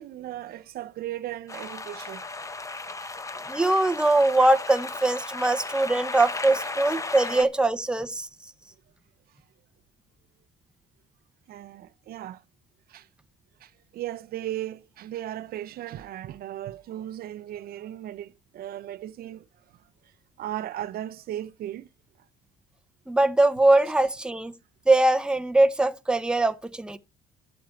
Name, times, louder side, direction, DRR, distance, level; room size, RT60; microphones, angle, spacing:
voice 1, 0.0-2.2 11.5-12.4 12.9-13.1 13.6-19.4 20.4-21.9, right 12 dB, 65° right, 0.7 m, -36 dB
sound 1, 1.5-7.4, left 3 dB, 20° left, 1.1 m, -35 dB
voice 2, 3.5-8.3 23.1-24.5 24.9-27.0, right 2 dB, 5° right, 0.8 m, -22 dB
11.5 x 7.7 x 4.4 m
cardioid pair, 110°, 17 cm